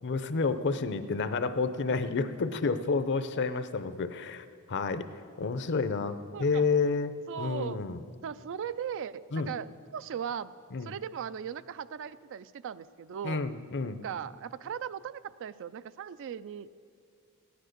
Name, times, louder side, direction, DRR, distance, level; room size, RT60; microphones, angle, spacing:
voice 1, 0.0-7.1 7.4-8.0 9.3-9.5 10.7-10.9 13.2-14.0, left 4 dB, 55° left, 12 dB, 0.6 m, -30 dB
voice 2, 6.3-6.8 7.3-7.8 8.2-10.5 10.8-13.4 14.0-16.7, right 8 dB, 60° right, 15 dB, 0.4 m, -38 dB
15.5 x 10.0 x 6.6 m, 2.3 s
head